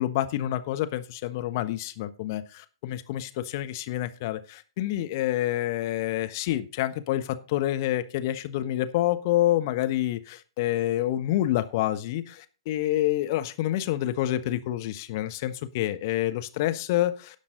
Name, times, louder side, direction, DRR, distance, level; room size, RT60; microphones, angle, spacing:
voice 1, 0.0-17.1, left 14 dB, 45° left, 9 dB, 1.2 m, -28 dB
17.5 x 6.0 x 3.9 m, 0.35 s
figure-of-eight pair, 115°, 3 cm